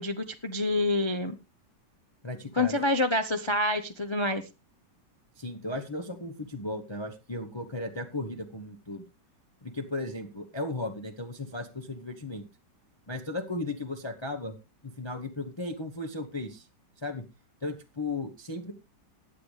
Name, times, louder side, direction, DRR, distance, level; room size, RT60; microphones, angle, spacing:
voice 1, 0.0-1.3 2.6-4.4, left 2 dB, 50° left, 7 dB, 0.3 m, -27 dB
voice 2, 2.2-2.8 5.4-9.0 9.6-12.5 13.1-14.6 14.8-16.7 17.0-17.2 17.6-18.7, left 2 dB, 20° left, 4 dB, 0.8 m, -36 dB
20.0 x 7.9 x 3.3 m, 0.27 s
omnidirectional pair, 1.9 m